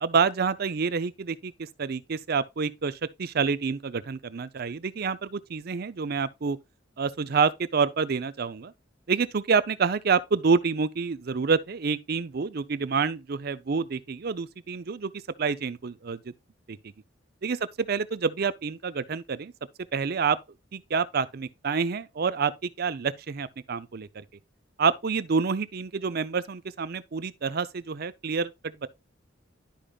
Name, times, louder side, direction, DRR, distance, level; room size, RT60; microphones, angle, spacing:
voice 1, 0.0-6.6 7.0-8.7 9.1-15.1 15.4-16.2 16.7-16.8 17.4-19.5 19.9-20.4 20.7-24.2 24.8-28.9, right 5 dB, 55° right, 0.5 m, -28 dB
11.5 x 5.1 x 2.3 m
head